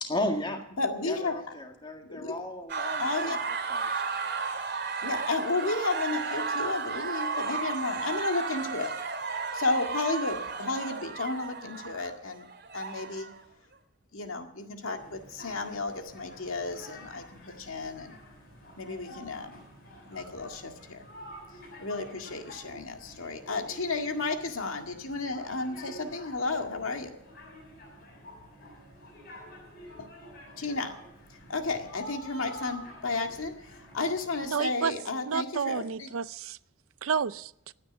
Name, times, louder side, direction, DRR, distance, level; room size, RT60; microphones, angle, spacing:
voice 1, 0.0-0.6 1.0-4.3, left 1 dB, 20° left, 4 dB, 1.8 m, -35 dB
voice 2, 0.8-1.3 2.0-2.4 3.0-3.4 5.0-8.9 9.5-12.5 12.7-13.3 14.1-17.2 17.6-18.1 18.8-19.6 20.1-21.0 21.8-27.1 30.0-30.1 30.6-30.9 31.5-33.5 33.9-36.1, left 3 dB, 85° left, 4 dB, 1.9 m, -32 dB
sound 1, 2.7-13.4, right 4 dB, 55° right, 2.4 m, -34 dB
sound 2, 15.0-34.5, equal, 45° left, 7.2 m, -48 dB
voice 3, 34.4-34.9 35.3-36.6 37.0-37.7, right 6 dB, 90° right, 17 dB, 0.5 m, -30 dB
16.5 x 9.6 x 7.2 m, 0.79 s
head